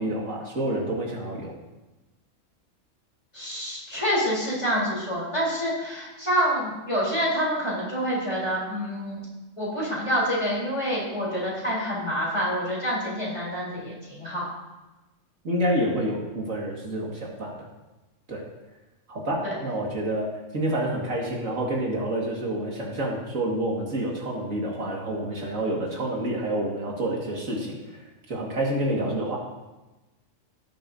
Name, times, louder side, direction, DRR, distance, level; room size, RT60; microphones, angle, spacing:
voice 1, 0.0-1.5 15.4-17.5 18.3-18.4 19.1-28.0 28.3-29.4, right 1 dB, 85° right, -2 dB, 2.4 m, -28 dB
voice 2, 3.3-9.2 9.6-14.5 19.4-19.6, equal, 25° left, -5 dB, 3.9 m, -27 dB
17.5 x 7.6 x 2.8 m, 1.1 s
omnidirectional pair, 1.3 m